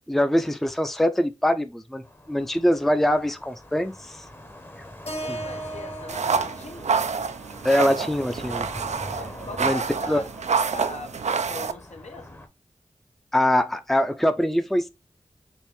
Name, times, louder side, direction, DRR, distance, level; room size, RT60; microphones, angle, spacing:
voice 1, 0.1-4.2 5.3-5.4 7.6-8.7 9.6-9.8 10.1-10.2 13.3-14.9, left 1 dB, ahead, 0.5 m, -23 dB
sound 1, 2.0-12.5, left 1 dB, 20° left, 0.8 m, -43 dB
Keyboard (musical), 5.1-9.3, right 1 dB, 55° left, 1.4 m, -39 dB
voice 2, 5.2-6.9 9.1-10.3 10.7-12.4, left 2 dB, 75° left, 0.9 m, -40 dB
Brushing Hair, 6.1-11.7, right 5 dB, 75° right, 0.4 m, -27 dB
4.4 x 2.6 x 3.5 m
wide cardioid pair, 50°, 12 cm